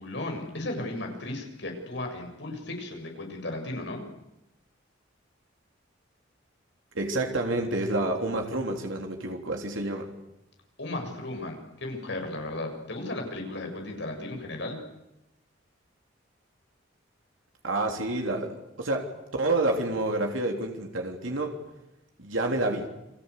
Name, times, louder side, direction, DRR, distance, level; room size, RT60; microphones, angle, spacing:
voice 1, 0.0-4.0 10.8-14.8, left 2 dB, 60° left, 3 dB, 7.3 m, -35 dB
voice 2, 6.9-10.1 17.6-21.6 22.2-22.9, right 2 dB, 85° right, 2 dB, 3.5 m, -29 dB
30.0 x 23.5 x 8.4 m, 0.89 s
head